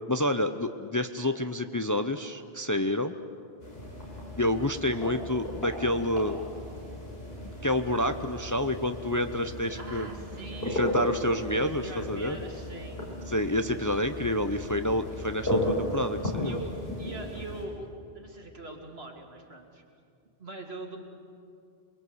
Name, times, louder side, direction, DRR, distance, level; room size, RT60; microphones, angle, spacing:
voice 1, 0.1-3.1 4.4-6.4 7.6-10.1 10.6-12.4 13.3-16.6, left 1 dB, 20° left, 8 dB, 0.6 m, -28 dB
sound 1, 3.6-17.6, left 1 dB, 75° left, 5.4 m, -35 dB
voice 2, 9.8-11.0 11.6-13.1 16.4-17.9 18.1-19.8 20.4-21.0, right 2 dB, 75° right, 1 dB, 2.8 m, -42 dB
27.5 x 21.5 x 7.9 m, 2.5 s
omnidirectional pair, 1.0 m